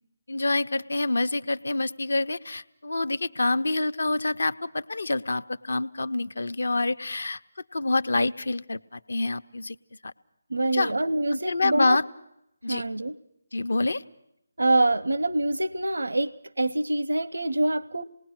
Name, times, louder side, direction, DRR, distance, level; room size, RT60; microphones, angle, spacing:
voice 1, 0.3-7.4 7.7-9.8 10.0-10.1 10.7-10.9 11.3-12.0 12.6-12.8 13.5-14.0, left 2 dB, 70° left, 11 dB, 0.8 m, -27 dB
voice 2, 10.5-12.0 12.7-13.2 14.6-18.0, right 2 dB, 75° right, 17 dB, 0.7 m, -25 dB
27.0 x 20.0 x 6.1 m, 0.81 s
figure-of-eight pair, 155°, 0 cm